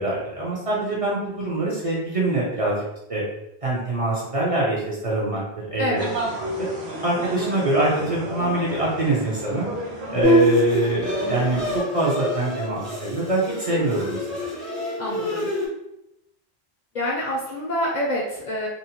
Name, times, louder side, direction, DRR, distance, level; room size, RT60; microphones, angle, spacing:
voice 1, 0.0-2.8 3.1-3.2 3.6-5.4 5.7-6.0 7.0-9.7 10.1-14.4, right 2 dB, 40° right, -6 dB, 0.6 m, -24 dB
voice 2, 5.8-6.1 15.0-15.5 16.9-18.7, equal, 50° left, -4 dB, 0.6 m, -26 dB
sound 1, 6.0-11.8, right 1 dB, 80° right, 1.1 m, -32 dB
Bowed string instrument, 10.2-15.7, left 1 dB, ahead, 0.6 m, -25 dB
2.7 x 2.1 x 2.8 m, 0.86 s
omnidirectional pair, 1.1 m